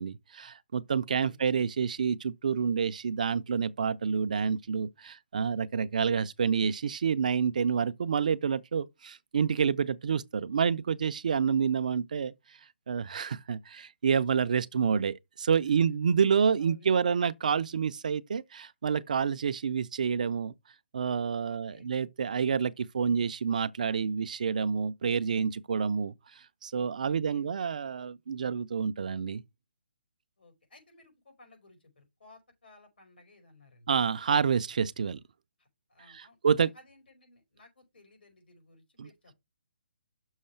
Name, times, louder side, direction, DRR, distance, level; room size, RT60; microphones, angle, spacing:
voice 1, 0.0-12.3 12.9-20.5 20.9-26.1 26.6-29.4 33.9-35.2 36.4-36.7 39.0-39.1, right 6 dB, 50° right, 0.5 m, -28 dB
voice 2, 1.0-1.4 15.7-17.0 21.5-21.9 27.1-27.5 30.4-33.9 35.6-39.4, left 2 dB, 80° left, 4.9 m, -58 dB
6.4 x 4.7 x 5.7 m
hypercardioid pair, 170°, 5 cm